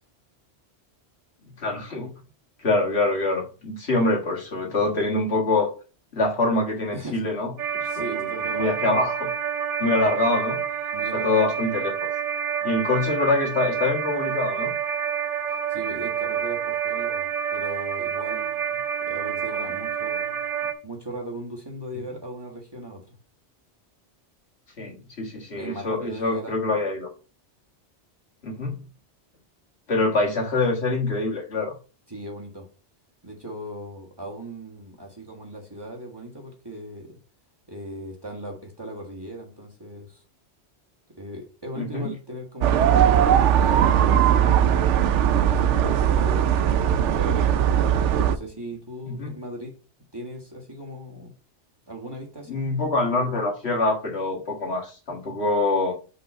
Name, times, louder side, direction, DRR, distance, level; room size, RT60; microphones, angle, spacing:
voice 1, 1.6-2.1 2.6-5.7 6.1-7.5 7.8-8.3 8.5-9.3 9.8-10.6 11.1-12.1 12.6-14.7 24.8-27.1 28.4-28.8 29.9-31.7 41.8-42.1 49.1-49.3 52.5-55.9, left 2 dB, 65° left, 0 dB, 1.9 m, -25 dB
voice 2, 6.9-7.3 7.8-9.0 10.9-11.5 15.7-20.4 20.8-23.1 25.5-26.5 32.1-32.7 33.2-37.2 37.7-40.2 41.1-44.7 45.5-46.8 47.1-47.6 48.2-49.7 50.1-51.3 51.9-52.6, right 1 dB, 20° right, -1 dB, 1.6 m, -38 dB
sound 1, 7.6-20.7, right 8 dB, 55° right, 1.0 m, -28 dB
sound 2, 42.6-48.3, right 9 dB, 85° right, 0.9 m, -19 dB
5.6 x 3.9 x 5.4 m, 0.35 s
omnidirectional pair, 1.2 m